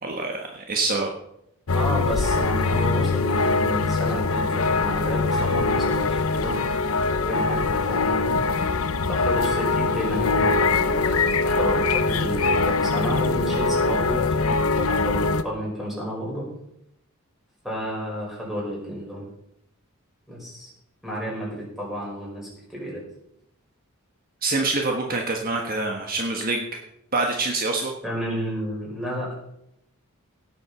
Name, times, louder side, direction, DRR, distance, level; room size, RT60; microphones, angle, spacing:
voice 1, 0.0-1.1 24.4-26.6 27.1-27.9, right 3 dB, 40° right, 1 dB, 1.5 m, -25 dB
sound 1, 1.7-15.4, left 3 dB, 70° left, 0.8 m, -22 dB
voice 2, 1.7-6.6 7.2-8.4 9.0-16.4 17.6-19.2 20.3-20.7 21.0-23.0 28.0-29.3, equal, ahead, -4 dB, 6.0 m, -31 dB
17.5 x 7.9 x 5.7 m, 0.79 s
head